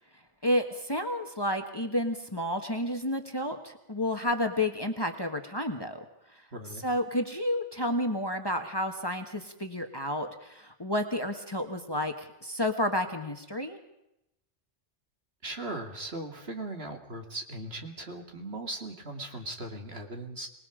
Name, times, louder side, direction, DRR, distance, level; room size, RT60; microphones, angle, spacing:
voice 1, 0.4-6.0 6.3-6.4 6.8-13.8, left 1 dB, 20° left, 6 dB, 1.4 m, -31 dB
voice 2, 6.5-6.9 15.4-20.5, right 2 dB, 55° right, 3 dB, 2.7 m, -38 dB
26.0 x 20.0 x 5.0 m, 0.85 s
omnidirectional pair, 1.3 m